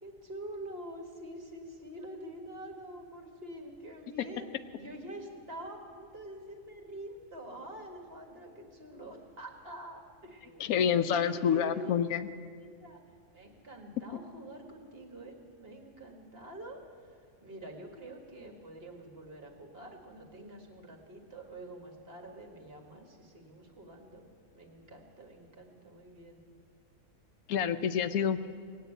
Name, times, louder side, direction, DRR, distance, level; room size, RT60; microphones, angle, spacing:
voice 1, 0.0-4.5 4.8-12.0 12.6-13.0 13.3-16.8 17.4-24.3 24.5-26.4, right 1 dB, 45° right, 2 dB, 1.9 m, -46 dB
voice 2, 10.6-12.3 27.5-28.5, left 8 dB, 85° left, 11 dB, 1.2 m, -28 dB
18.0 x 8.4 x 8.9 m, 2.1 s
omnidirectional pair, 1.5 m